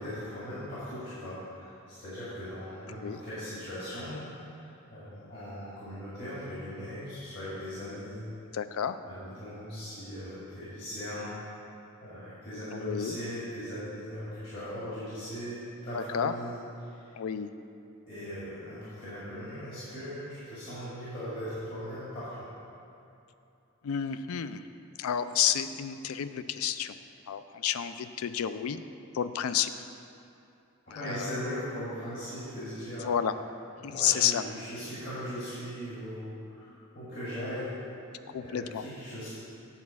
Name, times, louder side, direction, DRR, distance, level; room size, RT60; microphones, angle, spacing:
voice 1, 0.0-4.2 4.9-8.2 9.0-11.3 12.0-16.6 17.0-17.1 18.1-22.4 30.9-33.1 33.8-37.7 38.2-39.3, equal, 50° left, -10 dB, 1.9 m, -39 dB
voice 2, 2.9-3.2 8.5-9.0 12.7-13.2 15.9-16.3 17.1-17.5 23.8-24.7 25.0-26.9 27.3-28.8 29.1-29.7 30.9-31.4 33.0-33.3 33.8-34.4 38.3-38.8, left 9 dB, 90° left, 12 dB, 0.4 m, -30 dB
8.3 x 4.2 x 7.0 m, 2.7 s
head